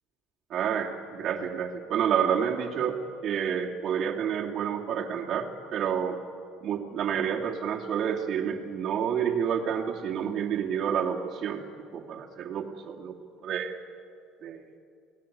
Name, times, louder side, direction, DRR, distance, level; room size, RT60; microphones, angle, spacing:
voice 1, 0.5-6.2 6.6-11.6 11.9-13.1 13.4-13.8 14.4-14.6, right 8 dB, 45° right, -1 dB, 2.6 m, -29 dB
28.5 x 19.0 x 8.7 m, 2.5 s
cardioid pair, 150°, 0 cm